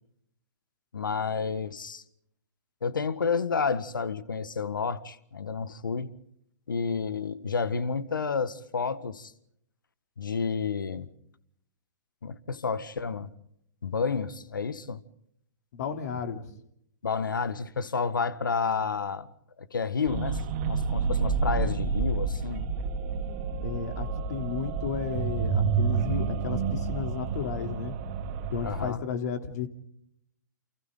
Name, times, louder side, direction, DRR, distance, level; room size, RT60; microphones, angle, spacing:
voice 1, 0.9-2.0 2.8-6.1 6.7-9.3 10.2-11.1 12.2-13.3 13.8-15.0 17.0-19.3 19.6-22.7 28.6-29.0, left 5 dB, 80° left, 1.6 m, -30 dB
voice 2, 15.7-16.4 23.6-27.9 28.5-29.7, left 7 dB, 55° left, 3.1 m, -33 dB
sound 1, 20.1-28.9, right 5 dB, 40° right, 2.6 m, -29 dB
29.5 x 28.5 x 3.8 m
hypercardioid pair, 120°, 11 cm